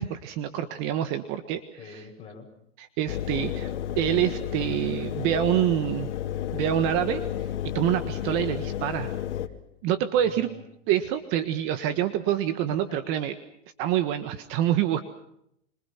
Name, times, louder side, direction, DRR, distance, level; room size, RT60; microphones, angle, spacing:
voice 1, 0.0-2.0 2.8-6.1 6.5-7.2 7.7-9.1 9.8-10.5 10.9-13.3 13.8-15.0, right 11 dB, 35° right, 9 dB, 1.6 m, -26 dB
voice 2, 1.8-2.5 10.2-10.6 12.7-13.0, left 5 dB, 15° left, 1 dB, 7.3 m, -45 dB
Engine, 3.1-9.5, left 10 dB, 65° left, 2.6 m, -32 dB
27.0 x 26.0 x 5.9 m, 0.74 s
hypercardioid pair, 140°, 37 cm